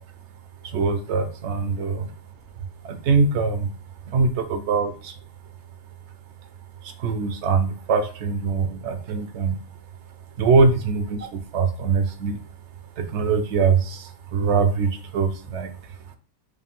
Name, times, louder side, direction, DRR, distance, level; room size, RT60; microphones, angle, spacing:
voice 1, 0.6-2.1 2.8-3.7 4.1-5.2 6.8-9.6 10.4-12.4 13.0-15.9, right 4 dB, 65° right, 8 dB, 0.8 m, -23 dB
5.0 x 2.2 x 3.5 m, 0.39 s
omnidirectional pair, 1.3 m